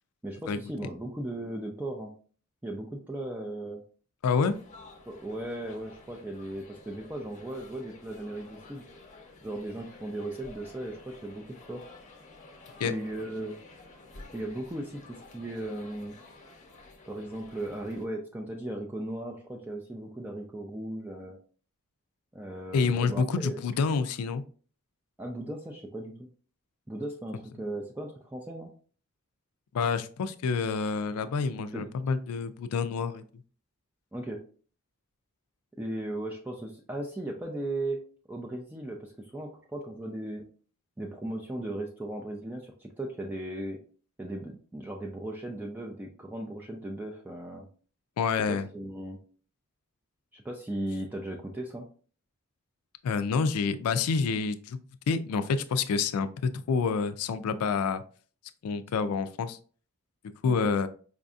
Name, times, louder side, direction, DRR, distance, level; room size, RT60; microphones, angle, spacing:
voice 1, 0.2-2.1 2.6-3.8 5.1-8.8 9.4-11.8 12.8-13.6 14.3-16.2 17.1-21.4 22.3-23.6 25.2-26.2 26.9-28.7 31.7-31.9 34.1-34.4 35.8-38.0 38.3-40.4 41.0-43.8 44.2-47.7 48.3-49.2 50.3-51.9 60.5-60.7, right 1 dB, 10° right, 0 dB, 0.3 m, -37 dB
voice 2, 4.2-4.5 12.8-12.9 22.7-24.4 29.7-33.2 48.2-48.7 53.0-54.8 55.1-58.0 58.6-59.6 60.4-60.9, left 5 dB, 85° left, 12 dB, 0.4 m, -28 dB
sound 1, 4.4-18.1, left 2 dB, 35° left, 0.6 m, -51 dB
4.8 x 2.6 x 2.3 m, 0.41 s
head